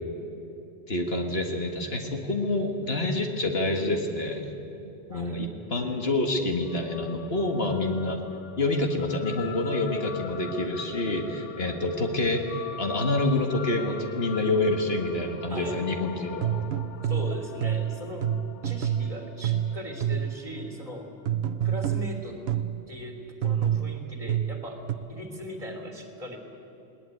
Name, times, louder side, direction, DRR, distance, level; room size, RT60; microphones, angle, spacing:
voice 1, 0.9-4.5 5.1-8.2 8.6-16.5, left 2 dB, 55° left, 3 dB, 1.8 m, -27 dB
voice 2, 5.1-5.5 15.5-15.9 17.0-18.4 18.6-21.1 21.6-22.4 22.9-23.2 23.4-26.4, left 1 dB, 30° right, 2 dB, 3.0 m, -39 dB
sound 1, 6.6-21.3, left 8 dB, 90° left, 1.1 m, -42 dB
sound 2, 16.4-20.5 21.3-22.8 23.4-24.9, right 10 dB, 65° right, 1.0 m, -28 dB
20.0 x 18.0 x 9.3 m, 3.0 s
omnidirectional pair, 1.2 m